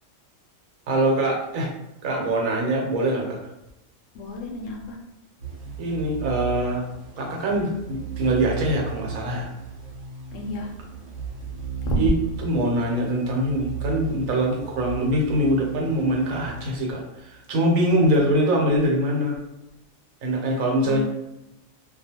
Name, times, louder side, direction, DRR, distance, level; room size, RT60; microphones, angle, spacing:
voice 1, 0.9-1.7 2.0-3.4 5.8-6.9 7.2-9.5 12.0-12.1 12.4-19.4 20.2-21.0, right 1 dB, 80° right, -1 dB, 1.1 m, -23 dB
voice 2, 4.1-5.0 10.3-10.7 11.8-12.1 20.8-21.0, equal, 75° left, 0 dB, 0.9 m, -28 dB
sound 1, 5.4-17.3, right 6 dB, 65° right, 0.8 m, -35 dB
2.4 x 2.2 x 2.8 m, 0.92 s
omnidirectional pair, 1.4 m